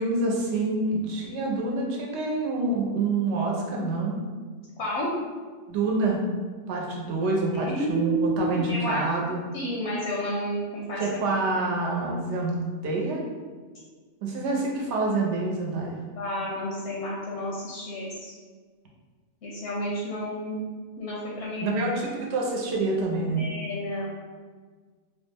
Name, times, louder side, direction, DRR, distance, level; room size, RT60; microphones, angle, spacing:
voice 1, 0.0-4.2 5.7-6.2 6.7-9.4 11.0-13.2 14.2-16.0 21.6-23.5, right 3 dB, 80° right, -1 dB, 0.9 m, -27 dB
voice 2, 4.8-5.1 7.5-9.0 9.5-11.3 16.2-18.3 19.4-20.6 21.0-21.8 23.4-24.1, equal, 80° left, -5 dB, 0.9 m, -30 dB
2.9 x 2.0 x 3.3 m, 1.5 s
omnidirectional pair, 1.2 m